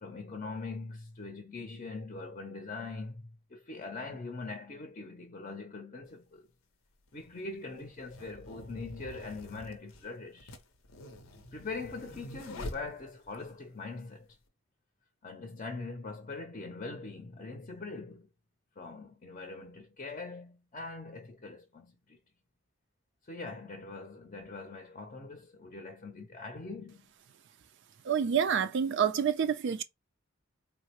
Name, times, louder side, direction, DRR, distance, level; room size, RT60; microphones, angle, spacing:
voice 1, 0.0-6.5 7.1-10.6 11.5-14.3 15.2-18.3 18.8-22.2 23.2-27.1, left 3 dB, 35° left, 0.6 m, -42 dB
sound 1, 6.1-6.2 7.1-13.5, left 1 dB, 90° left, 0.7 m, -46 dB
voice 2, 28.0-29.8, right 7 dB, 60° right, 0.4 m, -28 dB
3.7 x 2.0 x 2.9 m
head